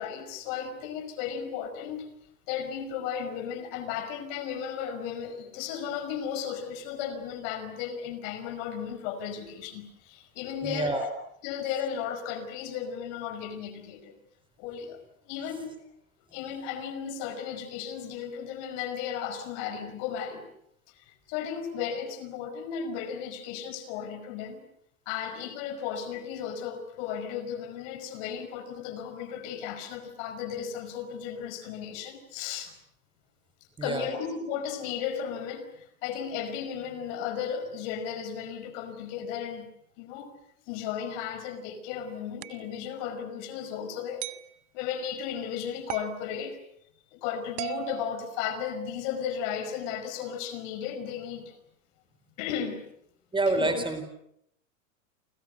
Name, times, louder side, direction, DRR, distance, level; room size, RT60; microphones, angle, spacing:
voice 1, 0.0-2.1 2.5-11.1 11.4-14.2 14.6-15.7 16.3-20.5 21.0-24.7 25.1-32.7 33.8-39.7 40.0-40.3 40.7-44.3 44.7-46.6 47.1-51.6 52.4-52.8 53.5-53.8, left 8 dB, 55° left, 10 dB, 5.1 m, -35 dB
voice 2, 10.6-11.1 33.8-34.1 53.3-54.1, right 2 dB, 10° right, 9 dB, 4.0 m, -27 dB
sound 1, 42.4-42.7 44.2-44.5 45.9-46.2 47.6-49.0, right 17 dB, 50° right, 1.4 m, -38 dB
29.5 x 26.0 x 6.6 m, 0.73 s
hypercardioid pair, 120°, 42 cm